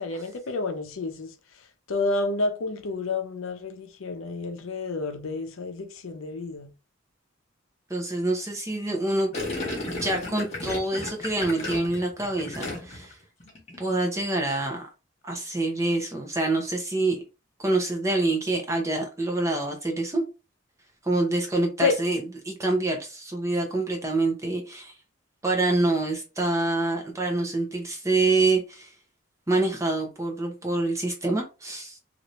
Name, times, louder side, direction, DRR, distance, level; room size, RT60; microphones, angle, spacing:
voice 1, 0.0-1.3 1.9-6.7 21.8-22.0, left 3 dB, 75° left, 0.6 m, -29 dB
voice 2, 7.9-9.3 10.0-13.1 13.8-14.9 15.2-17.2 17.6-20.2 21.0-22.2 22.4-24.9 25.4-28.9 29.5-32.0, right 2 dB, 15° right, 0.7 m, -26 dB
Gurgling, 9.3-13.1 13.4-13.8, left 2 dB, 30° left, 1.1 m, -33 dB
2.9 x 2.5 x 3.0 m
head